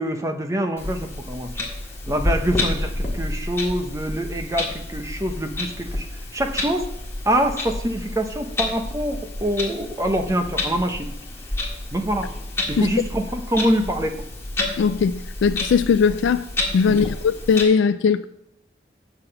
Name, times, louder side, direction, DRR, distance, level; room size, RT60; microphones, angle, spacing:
voice 1, 0.0-1.6 2.1-6.1 6.3-6.9 7.2-11.2 11.9-12.3 12.7-14.2 16.8-17.1, right 1 dB, 15° right, 0.8 m, -25 dB
Clock, 0.8-17.6, left 2 dB, 15° left, 1.6 m, -30 dB
voice 2, 14.8-16.4 16.7-18.2, left 6 dB, 85° left, 0.3 m, -19 dB
8.1 x 5.8 x 6.7 m
head